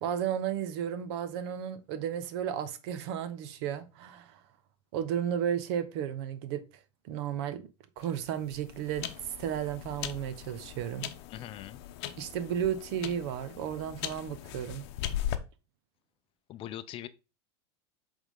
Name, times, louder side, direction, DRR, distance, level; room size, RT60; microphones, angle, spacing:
voice 1, 0.0-4.4 4.9-6.6 7.0-7.6 8.0-9.1 9.4-11.1 12.2-14.8, right 9 dB, 65° right, 0.9 m, -33 dB
sound 1, 8.0-15.4, left 12 dB, 65° left, 0.8 m, -39 dB
voice 2, 11.3-11.8 16.5-17.1, left 12 dB, 40° left, 0.5 m, -41 dB
8.0 x 3.7 x 3.7 m
supercardioid pair, 115°, 15 cm